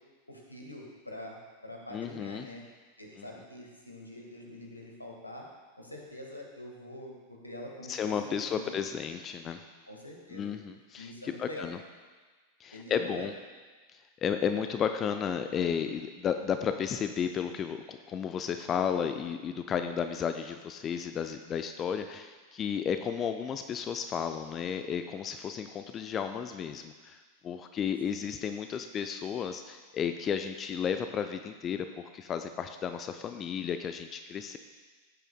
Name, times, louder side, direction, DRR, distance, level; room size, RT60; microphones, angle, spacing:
voice 1, 0.3-1.4 1.6-2.6 3.0-5.5 5.8-8.8 9.9-10.5 11.0-11.7 12.7-13.3 28.0-28.3, left 1 dB, 85° left, 0 dB, 1.6 m, -45 dB
voice 2, 1.9-2.4 7.9-9.6 10.3-11.8 12.6-13.3 13.9-34.6, left 7 dB, 25° left, 8 dB, 0.4 m, -33 dB
14.5 x 8.8 x 2.2 m, 1.4 s
figure-of-eight pair, 90°, 0 cm